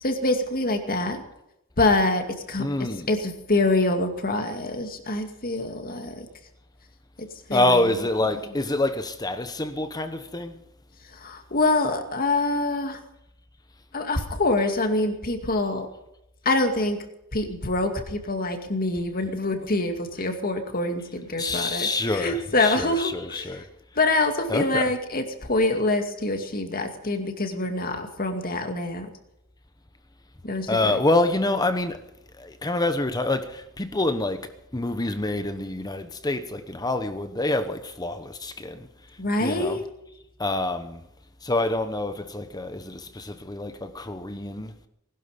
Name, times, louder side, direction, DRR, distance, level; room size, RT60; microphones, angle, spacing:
voice 1, 0.0-1.2 1.8-2.6 3.1-6.3 7.5-7.8 11.2-13.0 13.9-15.9 16.5-17.0 17.3-23.5 24.0-29.1 30.4-31.0 39.2-39.8, left 2 dB, 40° left, 2.3 m, -25 dB
voice 2, 2.6-3.2 7.5-10.5 14.6-14.7 21.4-23.7 24.0-24.2 24.5-24.9 30.7-32.0 32.4-38.9 39.4-39.8 40.4-41.0 41.4-44.8, left 2 dB, 15° left, 1.0 m, -27 dB
20.0 x 12.5 x 5.2 m
head